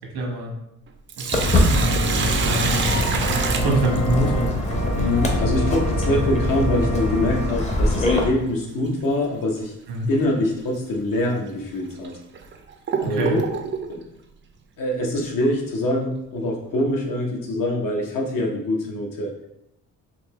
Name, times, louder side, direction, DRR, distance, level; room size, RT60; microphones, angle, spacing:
voice 1, 0.1-0.5 1.2-4.5 9.9-10.1 13.0-13.4, right 1 dB, 90° right, 0 dB, 1.2 m, -26 dB
Sink (filling or washing), 0.9-4.5 6.9-7.0 8.8-9.1 9.6-9.7 10.4-10.6 11.3-11.4 12.0-13.9, right 6 dB, 35° right, 0.4 m, -27 dB
Walk footsteps, 1.3-8.2, left 1 dB, 20° left, 0.7 m, -23 dB
Organ, 1.7-7.5, left 1 dB, 40° left, 1.1 m, -27 dB
voice 2, 4.9-9.7 10.1-12.1 13.0-13.5 13.9-14.0 14.8-19.3, left 1 dB, 65° left, 0 dB, 1.0 m, -24 dB
4.2 x 2.7 x 3.1 m, 0.85 s
cardioid pair, 105°, 36 cm